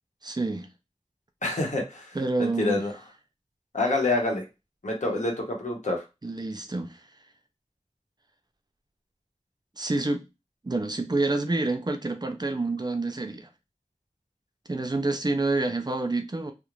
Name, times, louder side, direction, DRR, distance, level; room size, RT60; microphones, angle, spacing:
voice 1, 0.2-0.7 2.1-2.8 6.2-7.0 9.8-10.2 10.6-13.5 14.7-16.5, right 2 dB, 35° right, 0.4 m, -28 dB
voice 2, 1.4-2.9 3.7-4.5 4.8-6.0, left 2 dB, 80° left, 0.8 m, -27 dB
2.5 x 2.0 x 3.0 m
wide cardioid pair, 45°, 12 cm